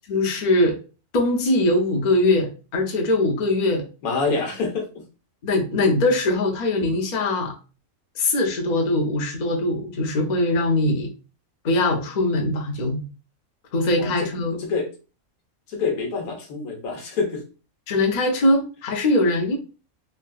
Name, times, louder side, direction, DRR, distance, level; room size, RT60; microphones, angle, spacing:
voice 1, 0.1-0.8 1.1-3.8 5.4-7.5 8.2-11.1 11.6-13.0 13.7-14.6 17.9-19.6, left 2 dB, 45° left, 2 dB, 0.6 m, -21 dB
voice 2, 4.0-5.0 14.0-14.1 14.6-14.9 15.7-17.4, left 4 dB, 85° left, 2 dB, 1.3 m, -26 dB
3.6 x 2.4 x 2.3 m, 0.33 s
omnidirectional pair, 1.5 m